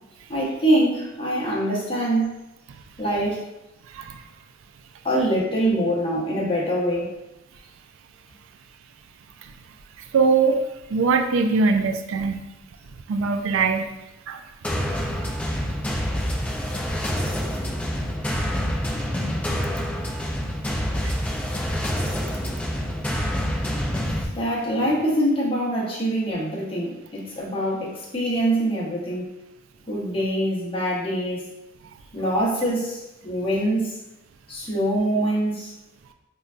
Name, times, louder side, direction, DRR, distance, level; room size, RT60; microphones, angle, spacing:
voice 1, 0.3-2.3 3.0-3.5 5.0-7.1 24.3-29.3 29.9-31.4 32.1-33.9 34.5-35.7, right 1 dB, 30° left, -5 dB, 0.8 m, -24 dB
voice 2, 10.1-10.6 10.9-12.4 13.1-13.9 14.3-14.4 14.9-15.3 21.0-21.1, right 4 dB, 75° right, 6 dB, 0.3 m, -22 dB
sound 1, 14.6-24.2, equal, 5° left, 0.4 m, -27 dB
5.2 x 2.2 x 2.4 m, 0.93 s
head